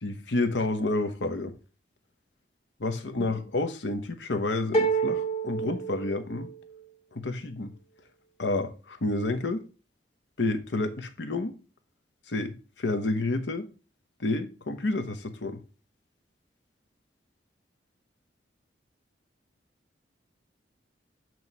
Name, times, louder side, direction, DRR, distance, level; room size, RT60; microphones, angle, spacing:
voice 1, 0.0-1.5 2.8-6.5 7.1-7.7 8.4-9.7 10.4-11.6 12.3-13.7 14.2-15.6, left 2 dB, 80° left, 0.9 m, -29 dB
sound 1, 4.7-6.7, right 4 dB, 40° left, 1.4 m, -28 dB
7.9 x 3.0 x 5.3 m
head